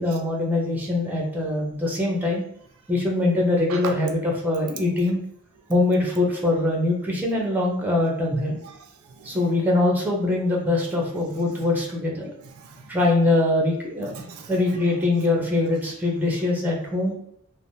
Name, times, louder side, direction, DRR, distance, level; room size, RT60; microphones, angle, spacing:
voice 1, 0.0-2.4 2.9-5.2 5.7-8.6 9.2-12.3 12.9-14.1 14.5-17.1, left 2 dB, 10° right, -1 dB, 0.6 m, -23 dB
voice 2, 8.6-9.6 11.2-11.6 12.4-13.0 14.0-14.6, right 5 dB, 70° right, 4 dB, 0.4 m, -40 dB
3.3 x 2.0 x 2.6 m, 0.69 s
head